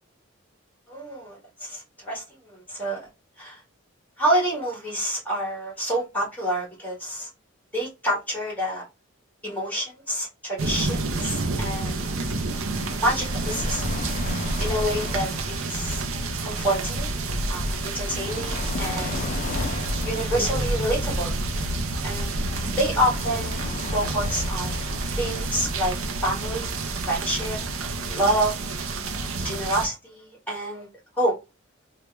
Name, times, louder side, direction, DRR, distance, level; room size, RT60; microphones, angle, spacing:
voice 1, 0.9-3.0 3.4-3.6 4.2-7.3 7.7-8.9 9.4-12.0 13.0-13.9 14.6-16.0 16.4-17.1 17.5-19.2 20.0-21.4 22.0-22.4 22.7-23.6 23.9-24.7 25.2-26.7 27.0-27.6 28.1-28.5 29.2-30.9 31.2-31.3, right 1 dB, 10° left, 1.5 m, -27 dB
sound 1, 10.6-25.7, left 5 dB, 40° left, 0.3 m, -39 dB
sound 2, 10.6-29.9, right 2 dB, 85° right, 0.6 m, -28 dB
3.0 x 2.2 x 3.3 m
head